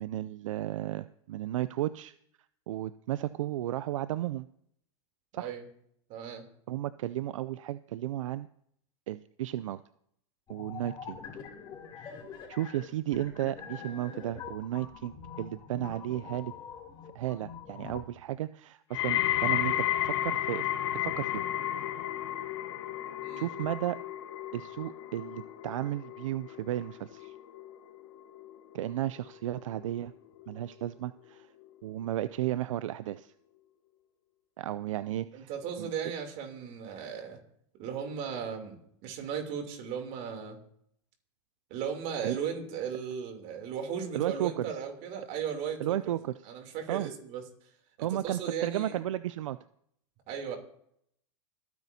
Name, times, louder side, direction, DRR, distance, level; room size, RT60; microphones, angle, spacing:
voice 1, 0.0-2.1 2.7-4.5 5.3-5.5 6.7-8.5 9.1-9.8 10.5-11.2 12.0-12.1 12.5-16.5 17.1-20.7 21.0-21.4 23.4-24.0 24.5-27.3 28.7-30.1 30.5-31.5 31.8-33.3 34.6-35.5 35.8-35.9 42.2-42.4 44.1-44.8 45.8-46.4 46.9-47.1 48.0-49.6, right 13 dB, 80° right, 15 dB, 0.4 m, -34 dB
voice 2, 5.3-5.6 6.1-6.4 23.2-23.5 35.3-37.4 37.8-38.7 39.0-40.6 41.7-46.2 46.5-47.4 48.0-49.0 50.3-50.6, right 7 dB, 45° right, 4 dB, 3.1 m, -36 dB
sound 1, 10.5-18.0, left 7 dB, 25° left, 3.4 m, -45 dB
sound 2, 18.9-30.1 30.4-30.9 31.6-31.7, left 13 dB, 65° left, 0.9 m, -33 dB
25.0 x 9.3 x 2.8 m, 0.69 s
hypercardioid pair, 125°, 16 cm